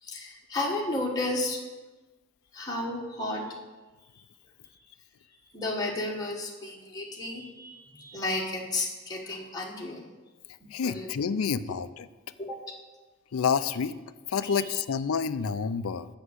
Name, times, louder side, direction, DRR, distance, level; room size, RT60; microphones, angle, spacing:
voice 1, 0.0-1.6 2.5-3.6 4.1-4.2 5.5-10.1 10.8-11.1 11.3-11.4 12.4-12.6 14.4-14.7, left 2 dB, 20° left, -3 dB, 1.5 m, -33 dB
voice 2, 10.7-12.1 13.3-13.9 14.3-16.1, left 6 dB, 90° left, 14 dB, 0.5 m, -28 dB
8.1 x 6.0 x 8.1 m, 1.2 s
head